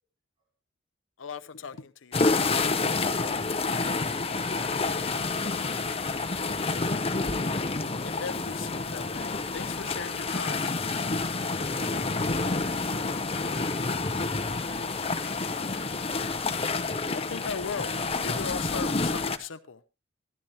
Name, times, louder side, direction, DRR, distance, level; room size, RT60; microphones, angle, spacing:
voice 1, 1.2-2.7 8.0-10.8 17.1-19.8, left 5 dB, 80° left, 0.7 m, -38 dB
sound 1, 2.1-19.4, left 3 dB, 30° left, 0.8 m, -29 dB
voice 2, 3.7-7.0 11.7-16.2, right 1 dB, 25° right, 5.0 m, -51 dB
13.0 x 13.0 x 3.0 m
head